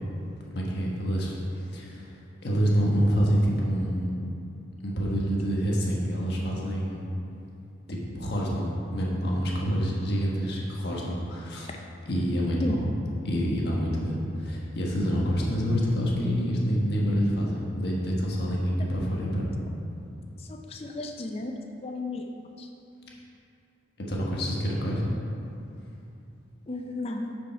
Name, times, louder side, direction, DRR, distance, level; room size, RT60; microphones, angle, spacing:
voice 1, 0.5-2.1 2.4-4.1 4.8-7.1 7.9-11.7 12.1-12.9 13.2-19.5 24.0-25.1, equal, 55° left, -3 dB, 1.4 m, -27 dB
voice 2, 20.4-21.5 21.8-22.3 22.6-22.7 26.7-27.3, left 2 dB, 30° left, 3 dB, 0.4 m, -34 dB
9.1 x 5.3 x 4.4 m, 2.7 s
head